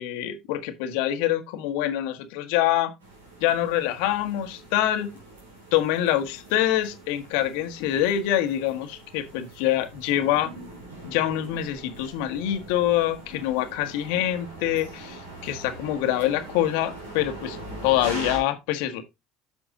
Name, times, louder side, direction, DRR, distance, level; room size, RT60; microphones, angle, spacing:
voice 1, 0.0-2.9 3.4-5.1 5.7-10.5 11.0-17.6 17.8-19.0, left 12 dB, 70° left, 1.3 m, -25 dB
sound 1, 3.0-18.4, right 2 dB, 90° right, 3.1 m, -42 dB
8.4 x 5.9 x 3.8 m
hypercardioid pair, 65°, 0 cm